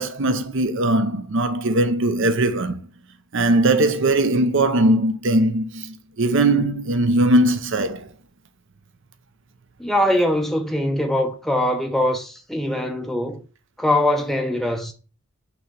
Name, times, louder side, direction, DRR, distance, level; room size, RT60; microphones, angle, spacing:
voice 1, 0.0-2.8 3.3-8.1, right 1 dB, 55° right, 0.7 m, -20 dB
voice 2, 9.8-13.4 13.8-14.9, left 1 dB, ahead, 0.6 m, -22 dB
6.1 x 3.1 x 5.2 m
head